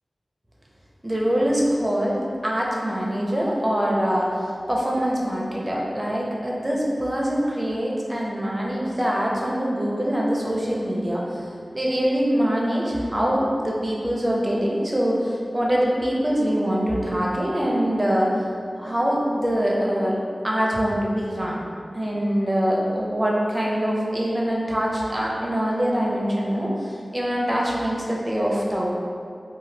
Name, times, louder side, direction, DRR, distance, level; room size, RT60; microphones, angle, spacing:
voice 1, 1.0-4.3 4.7-18.3 18.8-20.2 20.4-21.6 21.9-28.9, equal, 20° right, -4 dB, 0.5 m, -24 dB
2.7 x 2.2 x 3.1 m, 2.3 s
wide cardioid pair, 85°, 0 cm